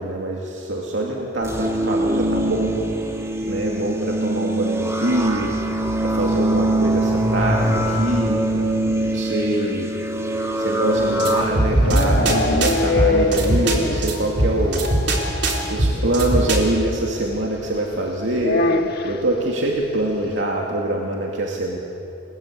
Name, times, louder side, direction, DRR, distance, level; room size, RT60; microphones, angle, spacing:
voice 1, 0.0-2.7 3.4-5.6 6.0-8.4 9.0-9.9 10.6-14.8 15.7-18.7 19.0-21.8, right 1 dB, 80° right, -1 dB, 2.6 m, -24 dB
sound 1, 1.4-11.4, right 1 dB, 15° right, 2.5 m, -22 dB
sound 2, 11.0-16.7, right 1 dB, 65° right, 3.9 m, -22 dB
sound 3, 11.1-14.2 14.5-14.6 14.9-15.0 15.2-15.3 16.6-16.7 18.4-19.2, left 2 dB, 55° left, 1.7 m, -22 dB
29.0 x 20.5 x 8.2 m, 2.8 s
head